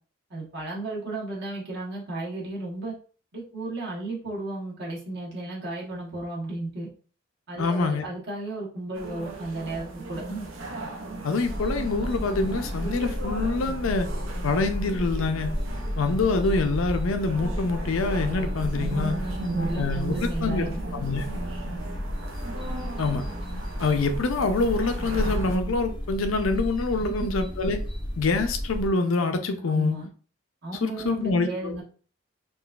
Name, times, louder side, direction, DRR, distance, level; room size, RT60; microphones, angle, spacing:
voice 1, 0.3-2.9 3.3-6.9 7.5-10.5 18.7-20.8 27.2-27.3 29.6-30.1 30.6-31.8, right 2 dB, 55° right, -4 dB, 1.2 m, -34 dB
voice 2, 7.6-8.1 11.2-14.1 14.4-15.6 16.0-19.2 19.8-21.3 23.0-23.2 23.8-27.8 28.2-30.0 30.8-31.8, left 3 dB, 80° left, 7 dB, 0.5 m, -26 dB
sound 1, 8.9-25.6, right 2 dB, 75° right, 0.6 m, -36 dB
sound 2, 11.4-28.9, equal, 20° left, 0.4 m, -33 dB
3.8 x 2.4 x 2.4 m, 0.40 s
head